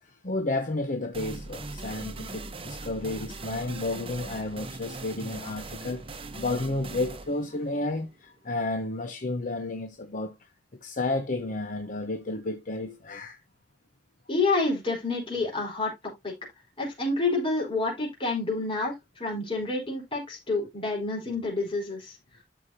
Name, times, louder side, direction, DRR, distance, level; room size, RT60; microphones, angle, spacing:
voice 1, 0.0-13.4 18.8-18.9, left 2 dB, 45° left, 0.9 m, -32 dB
sound 1, 1.1-8.6, right 3 dB, 30° right, 1.0 m, -40 dB
voice 2, 14.3-16.3 16.8-22.2, left 3 dB, 30° left, 4.3 m, -28 dB
12.5 x 4.9 x 2.8 m
head